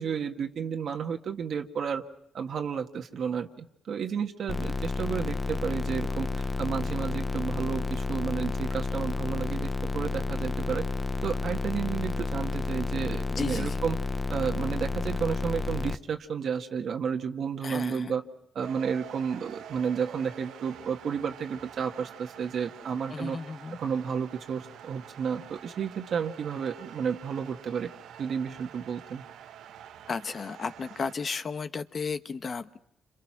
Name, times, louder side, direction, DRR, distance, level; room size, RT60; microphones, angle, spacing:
voice 1, 0.0-2.0 2.3-10.9 11.2-14.0 14.3-18.2 18.5-23.4 23.8-27.9 28.2-29.2, right 7 dB, 60° right, 4 dB, 1.6 m, -32 dB
sound 1, 4.5-16.0, left 3 dB, 25° left, 0.9 m, -31 dB
voice 2, 13.3-13.8 17.6-18.1 23.1-23.8 30.1-32.8, left 5 dB, 40° left, 10 dB, 1.3 m, -34 dB
sound 2, 18.6-31.2, right 10 dB, 80° right, 1.2 m, -47 dB
29.5 x 26.5 x 6.1 m, 0.75 s
cardioid pair, 90°, 0 cm